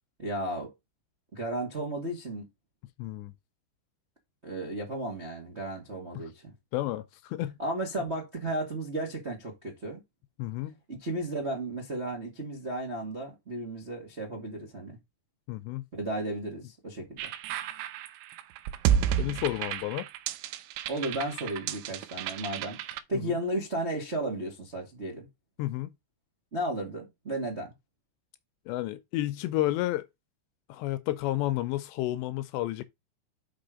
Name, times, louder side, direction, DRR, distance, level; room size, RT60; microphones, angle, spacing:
voice 1, 0.2-0.7 1.3-2.5 4.4-6.5 7.6-10.0 10.9-15.0 15.9-17.3 20.9-25.3 26.5-27.7, right 1 dB, 45° right, 0.8 m, -34 dB
voice 2, 3.0-3.3 6.2-6.3 6.7-7.5 10.4-10.8 15.5-15.8 19.2-20.1 23.1-23.4 25.6-25.9 28.7-30.1 30.7-32.8, left 15 dB, 80° left, 2.7 m, -31 dB
sound 1, 17.2-23.0, right 9 dB, 85° right, 2.9 m, -31 dB
6.1 x 5.8 x 5.1 m
omnidirectional pair, 5.3 m